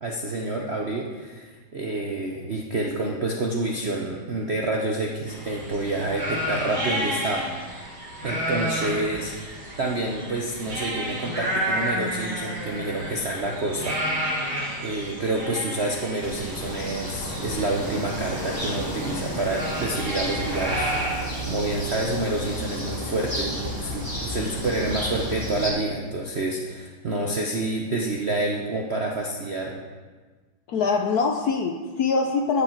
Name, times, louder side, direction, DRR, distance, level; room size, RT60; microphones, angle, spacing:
voice 1, 0.0-7.5 8.2-14.3 14.8-29.8, right 2 dB, 60° right, 0 dB, 0.6 m, -28 dB
sound 1, 5.3-21.1, equal, 85° right, 4.5 m, -31 dB
sound 2, 16.2-25.7, equal, 10° left, 2.2 m, -32 dB
voice 2, 30.7-32.6, left 4 dB, 65° left, 4 dB, 1.0 m, -23 dB
13.0 x 7.1 x 4.5 m, 1.4 s
omnidirectional pair, 2.3 m